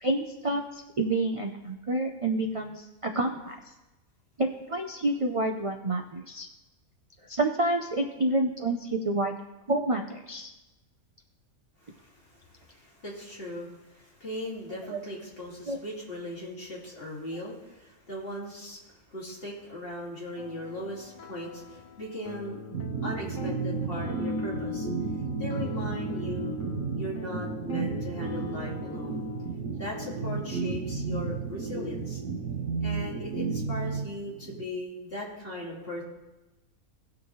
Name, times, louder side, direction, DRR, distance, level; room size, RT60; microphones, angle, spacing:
voice 1, 0.0-3.7 4.4-6.5 7.2-9.4 9.7-10.5 14.9-15.0 15.7-15.8, right 2 dB, 55° right, 3 dB, 0.3 m, -29 dB
voice 2, 11.8-22.6 23.0-24.9 25.4-26.5 27.0-29.2 29.8-32.2 32.8-36.0, left 1 dB, 40° left, -5 dB, 2.7 m, -38 dB
sound 1, 20.4-29.5, left 6 dB, 75° left, 0.4 m, -46 dB
sound 2, 22.7-34.6, right 4 dB, 75° right, 1.6 m, -32 dB
18.0 x 6.0 x 3.1 m, 1.0 s
omnidirectional pair, 1.5 m